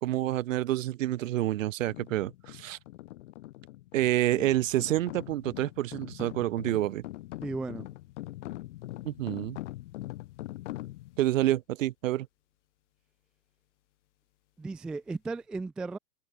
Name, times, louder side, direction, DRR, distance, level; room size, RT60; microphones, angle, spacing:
voice 1, 0.0-2.8 3.9-7.0 9.0-9.6 11.2-12.3, right 14 dB, 50° right, 1.6 m, -28 dB
sound 1, 1.8-11.3, left 17 dB, 45° left, 4.2 m, -42 dB
voice 2, 7.4-7.9 14.6-16.0, right 3 dB, ahead, 0.5 m, -35 dB
hypercardioid pair, 160°, 49 cm